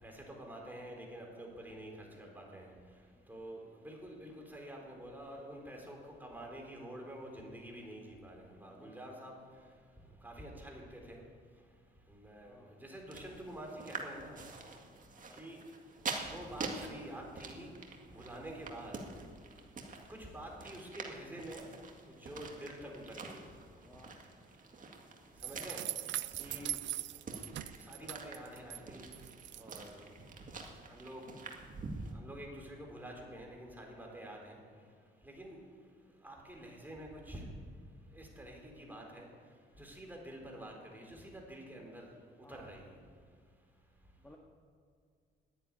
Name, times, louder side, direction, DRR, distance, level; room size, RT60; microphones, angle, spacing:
voice 1, 0.0-2.7 3.3-9.3 10.2-10.8 11.1-11.2 12.1-12.5 12.8-14.4 15.3-15.6 16.3-17.7 18.1-18.9 20.1-21.6 22.2-23.4 25.4-25.8 26.4-26.8 27.8-29.1 29.6-30.1 30.9-31.2 32.1-34.6 35.2-35.6 36.2-37.4 38.1-39.3 39.8-42.1 42.5-42.9, right 1 dB, 10° right, 0 dB, 4.1 m, -48 dB
voice 2, 8.7-9.0 12.4-12.7 15.3-15.5 23.8-24.1 34.0-34.1 42.4-42.8 44.2-44.4, left 1 dB, 10° left, 0 dB, 1.6 m, -59 dB
sound 1, 13.1-32.1, right 3 dB, 40° right, 2.1 m, -47 dB
sound 2, 25.4-28.8 29.1-29.8, right 14 dB, 65° right, 0.4 m, -40 dB
11.0 x 9.8 x 9.7 m, 2.1 s
cardioid pair, 90°, 20 cm